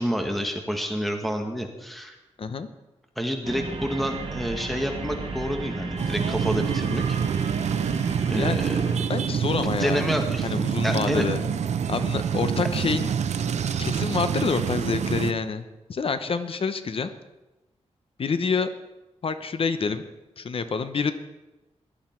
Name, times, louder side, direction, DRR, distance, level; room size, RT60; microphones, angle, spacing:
voice 1, 0.0-2.1 3.2-7.2 8.3-9.0 9.5-10.5 10.8-11.3, equal, ahead, 4 dB, 1.6 m, -29 dB
voice 2, 2.4-2.7 8.4-8.6 9.1-10.1 10.4-11.5 11.9-13.1 13.8-15.6 15.9-17.1 18.2-18.7 19.2-20.0 20.4-21.1, left 5 dB, 55° left, 11 dB, 0.8 m, -27 dB
sound 1, 3.4-9.0, right 3 dB, 55° right, 2.2 m, -34 dB
sound 2, 6.0-15.3, right 7 dB, 90° right, 0.7 m, -26 dB
16.5 x 12.0 x 4.5 m, 1.0 s
wide cardioid pair, 120°, 11 cm